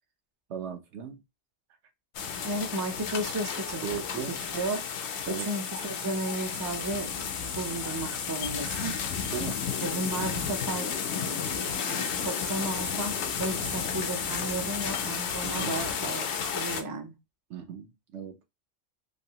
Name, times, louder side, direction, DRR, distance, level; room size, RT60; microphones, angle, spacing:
voice 1, 0.5-1.2 3.8-4.4 5.3-5.5 9.3-9.6 13.8-13.9 15.4-15.7 17.5-18.4, right 8 dB, 75° right, 1.0 m, -37 dB
sound 1, 2.1-16.8, left 7 dB, 70° left, 0.9 m, -32 dB
voice 2, 2.4-3.9 4.1-4.8 5.3-7.2 7.5-9.3 9.8-17.1, right 2 dB, 35° right, 0.3 m, -34 dB
3.2 x 2.6 x 2.8 m
omnidirectional pair, 1.2 m